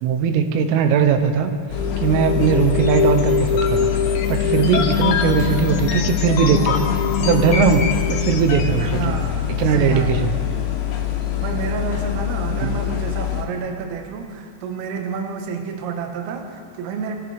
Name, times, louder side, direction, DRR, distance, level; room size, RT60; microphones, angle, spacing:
voice 1, 0.0-1.5 2.0-6.9 7.2-9.2 9.6-10.3 12.6-12.8, right 7 dB, 85° right, 7 dB, 3.4 m, -19 dB
sound 1, 1.6-3.9 4.6-11.7, left 2 dB, 30° right, 5.1 m, -35 dB
sound 2, 1.7-8.9, left 6 dB, 85° left, 2.0 m, -23 dB
sound 3, 1.7-13.4, left 12 dB, 70° left, 3.2 m, -25 dB
voice 2, 8.8-9.4 9.7-10.3 11.4-17.1, right 5 dB, 65° right, 3 dB, 2.8 m, -29 dB
24.0 x 14.5 x 3.5 m, 2.1 s
omnidirectional pair, 5.6 m